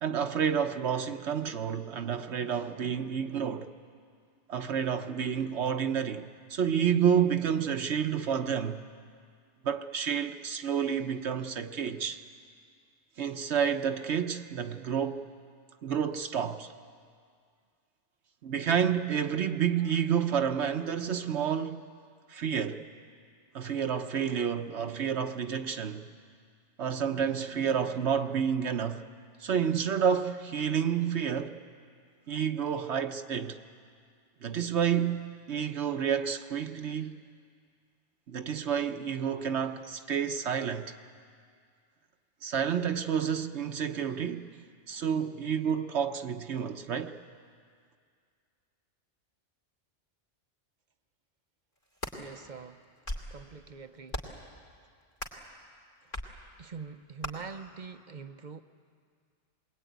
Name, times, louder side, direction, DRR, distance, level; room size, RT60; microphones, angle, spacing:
voice 1, 0.0-3.7 4.5-8.8 9.6-12.2 13.2-15.3 15.8-16.7 18.4-21.8 22.3-22.9 23.5-26.1 26.8-29.0 29.4-31.6 32.3-33.6 34.4-37.2 38.3-40.9 42.4-44.6 44.9-47.2, right 8 dB, 70° right, 1.1 m, -29 dB
sound 1, 51.8-52.2 52.8-53.4 54.1-54.4 55.2-55.5 56.1-56.3 57.2-57.3, left 1 dB, 45° left, 3.0 m, -37 dB
voice 2, 52.1-52.8 53.1-54.2 56.0-56.1 56.6-58.6, right 5 dB, 45° right, 0.8 m, -44 dB
22.0 x 21.5 x 9.3 m
omnidirectional pair, 1.2 m